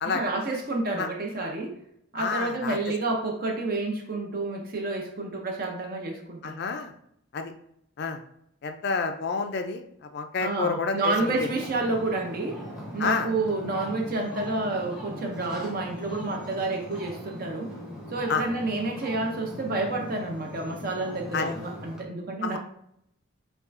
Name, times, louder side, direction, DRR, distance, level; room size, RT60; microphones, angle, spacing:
voice 1, 0.0-1.8 2.1-6.6 10.4-12.6 12.9-17.7 18.1-22.6, right 2 dB, 45° right, 2 dB, 0.5 m, -29 dB
voice 2, 2.2-2.8 6.4-6.9 7.3-7.5 8.0-8.2 8.6-9.8 10.1-11.1 13.0-13.3 18.3-18.4 21.3-21.5 22.4-22.6, left 5 dB, 50° left, 7 dB, 0.4 m, -28 dB
Ocean, 11.2-22.0, left 1 dB, 5° right, 0.7 m, -40 dB
5.3 x 2.3 x 2.5 m, 0.73 s
head